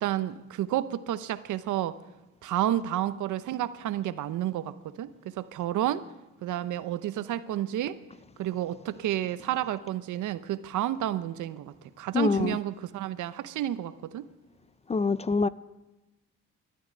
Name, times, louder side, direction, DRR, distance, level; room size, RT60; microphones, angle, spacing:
voice 1, 0.0-2.0 2.4-6.0 6.4-8.0 8.4-14.3, right 12 dB, 80° right, 0.8 m, -31 dB
voice 2, 12.1-12.6 14.9-15.5, left 4 dB, 20° left, 0.4 m, -25 dB
12.0 x 11.5 x 9.3 m
cardioid pair, 90°, 30 cm